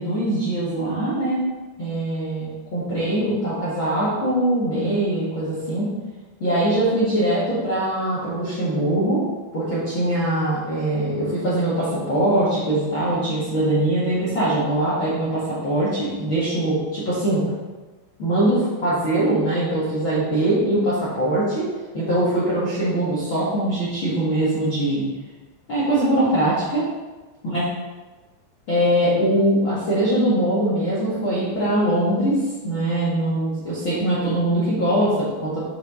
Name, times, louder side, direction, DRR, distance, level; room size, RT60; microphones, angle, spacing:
voice 1, 0.0-1.4 1.8-5.9 6.4-9.2 9.5-17.4 18.2-21.7 21.9-25.0 25.7-26.9 27.4-27.6 28.7-32.4 32.6-35.6, right 1 dB, 50° left, -10 dB, 1.5 m, -22 dB
7.6 x 4.7 x 4.9 m, 1.2 s
omnidirectional pair, 5.1 m